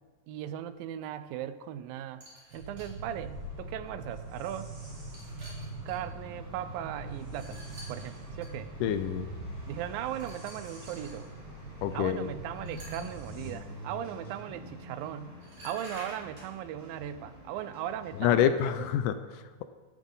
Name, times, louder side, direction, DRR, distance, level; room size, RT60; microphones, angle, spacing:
voice 1, 0.3-2.2 2.5-4.7 5.8-7.6 7.9-8.7 9.7-11.3 11.9-15.4 15.6-18.9, right 11 dB, 90° right, 12 dB, 2.4 m, -38 dB
sound 1, 2.2-2.9 3.8-3.9 4.8-6.0 7.3-8.5 10.2-11.2 12.5-13.3 15.0-15.1 15.4-16.5, right 1 dB, 50° right, 5.2 m, -49 dB
sound 2, 2.5-13.5, right 2 dB, 75° right, 4.7 m, -43 dB
sound 3, 3.3-18.3, equal, 15° right, 4.0 m, -49 dB
voice 2, 8.8-9.3 11.8-12.3 18.2-19.6, left 9 dB, 80° left, 10 dB, 2.0 m, -27 dB
15.0 x 11.5 x 3.9 m, 1.4 s
omnidirectional pair, 4.0 m